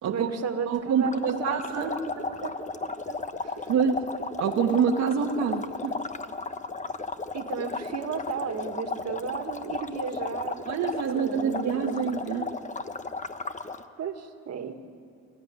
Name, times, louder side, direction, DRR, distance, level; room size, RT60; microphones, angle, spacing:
voice 1, 0.1-3.6 7.3-10.7 11.1-12.0 14.0-14.7, right 6 dB, 55° right, 6 dB, 1.9 m, -35 dB
voice 2, 0.7-2.0 3.7-4.1 4.4-6.0 10.7-12.5, right 6 dB, 70° right, 0 dB, 1.5 m, -26 dB
sound 1, 1.0-13.8, left 3 dB, 25° left, 1.1 m, -35 dB
26.0 x 14.0 x 9.6 m, 2.4 s
cardioid pair, 90°, 30 cm